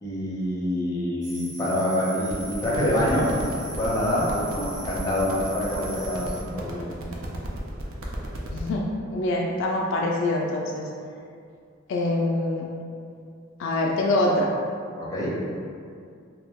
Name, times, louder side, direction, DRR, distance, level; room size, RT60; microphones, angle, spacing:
voice 1, 0.0-3.5 3.8-6.9 15.0-15.4, left 1 dB, 20° left, -6 dB, 0.6 m, -26 dB
sound 1, 1.2-6.4, right 1 dB, 20° right, 0.7 m, -40 dB
sound 2, 2.2-8.7, right 1 dB, 80° right, 0.5 m, -36 dB
voice 2, 8.5-8.9 9.1-10.8 11.9-12.7 13.6-14.5, left 2 dB, 65° left, -1 dB, 0.3 m, -24 dB
2.8 x 2.1 x 3.4 m, 2.3 s
head